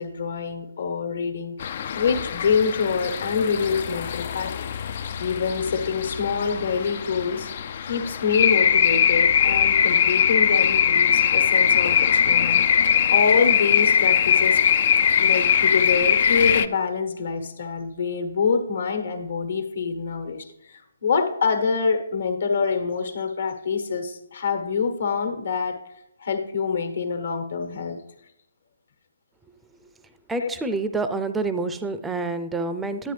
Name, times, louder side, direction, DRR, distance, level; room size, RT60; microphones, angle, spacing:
voice 1, 0.0-4.7 5.2-7.5 7.8-12.6 13.1-14.6 14.9-25.8 26.2-28.0 30.4-30.5, left 5 dB, 60° left, 6 dB, 1.4 m, -26 dB
sound 1, 1.6-16.7, left 8 dB, 45° left, 0.4 m, -21 dB
voice 2, 30.3-33.1, right 3 dB, 5° right, 10 dB, 0.5 m, -27 dB
10.5 x 9.0 x 3.3 m, 0.86 s
figure-of-eight pair, 145°, 0 cm